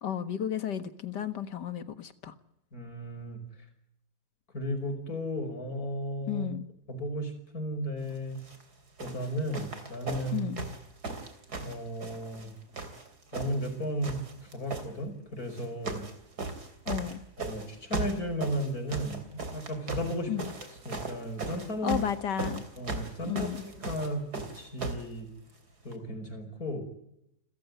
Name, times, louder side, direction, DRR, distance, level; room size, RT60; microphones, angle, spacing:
voice 1, 0.0-2.3 6.3-6.7 10.3-10.7 16.9-17.2 20.3-20.5 21.8-22.7 23.2-23.6, left 9 dB, 85° left, 11 dB, 2.1 m, -33 dB
voice 2, 2.7-3.4 4.5-6.5 6.9-8.4 9.0-10.5 11.6-12.5 13.3-16.1 17.4-20.3 20.9-22.0 22.8-23.5 23.9-25.3 25.8-26.8, equal, 60° left, 6 dB, 5.8 m, -34 dB
sound 1, 8.3-8.6 9.0-12.5 12.7-13.7 14.0-14.9 15.5-16.1 16.4-25.1 25.9-26.0, right 3 dB, 65° right, 3.8 m, -37 dB
29.5 x 14.5 x 9.5 m, 0.81 s
omnidirectional pair, 1.8 m